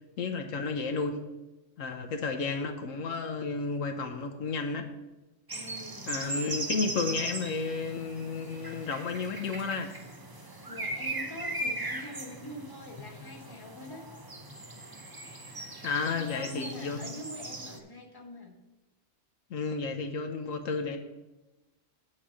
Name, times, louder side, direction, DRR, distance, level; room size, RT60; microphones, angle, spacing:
voice 1, 0.2-1.2 1.8-4.9 6.1-9.9 15.8-17.0 19.5-21.0, left 4 dB, 80° left, 5 dB, 1.2 m, -32 dB
voice 2, 5.5-6.1 10.7-14.0 16.1-18.6, left 1 dB, 20° left, 0 dB, 1.3 m, -44 dB
sound 1, 5.5-17.8, right 2 dB, 25° right, 0.6 m, -39 dB
8.8 x 4.3 x 7.4 m, 1.1 s
omnidirectional pair, 1.3 m